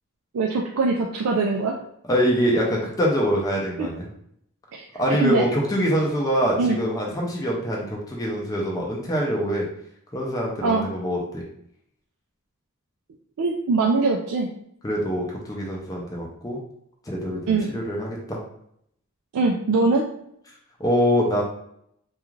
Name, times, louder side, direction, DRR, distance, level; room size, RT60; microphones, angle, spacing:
voice 1, 0.3-1.8 3.8-3.9 4.7-5.4 6.6-6.8 10.6-10.9 13.4-14.5 17.5-17.7 19.3-20.0, right 3 dB, 85° right, 0 dB, 0.3 m, -22 dB
voice 2, 2.1-4.1 4.9-9.6 10.1-11.4 14.8-16.6 17.1-18.4 20.8-21.4, equal, 15° left, -2 dB, 0.4 m, -24 dB
2.3 x 2.3 x 3.0 m, 0.72 s
head